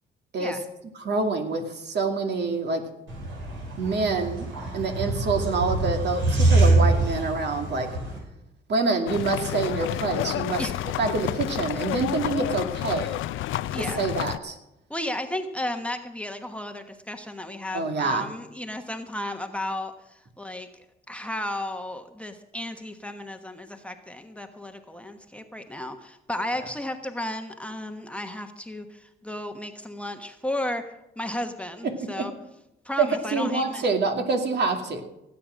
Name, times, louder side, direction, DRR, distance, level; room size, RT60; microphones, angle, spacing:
voice 1, 1.0-2.9 3.8-4.5 4.7-7.9 8.7-13.2 13.7-14.6 17.7-18.3 33.0-35.0, right 3 dB, 60° right, 4 dB, 2.4 m, -26 dB
sound 1, 3.1-8.2, right 2 dB, 80° right, 6.1 m, -24 dB
sound 2, 9.1-14.4, left 14 dB, 80° left, 0.6 m, -30 dB
voice 2, 13.7-14.0 14.9-20.7 21.1-32.3 32.8-33.9, left 1 dB, 5° left, 5 dB, 1.2 m, -34 dB
17.0 x 8.8 x 6.3 m, 0.86 s
cardioid pair, 90°, 20 cm